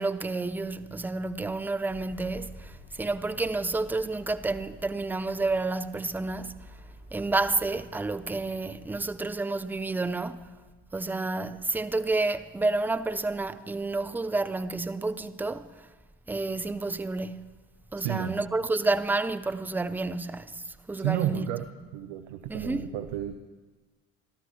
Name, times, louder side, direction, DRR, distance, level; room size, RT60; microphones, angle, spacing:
voice 1, 0.0-6.7 7.1-10.6 10.9-15.9 16.3-17.4 17.9-21.5 22.5-22.9, right 3 dB, 5° right, 0.4 m, -30 dB
sound 1, 1.9-9.3, left 2 dB, 20° left, 1.5 m, -50 dB
voice 2, 18.0-18.4 21.0-23.4, right 12 dB, 65° right, 0.8 m, -32 dB
24.5 x 13.0 x 3.0 m
hypercardioid pair, 65°, 42 cm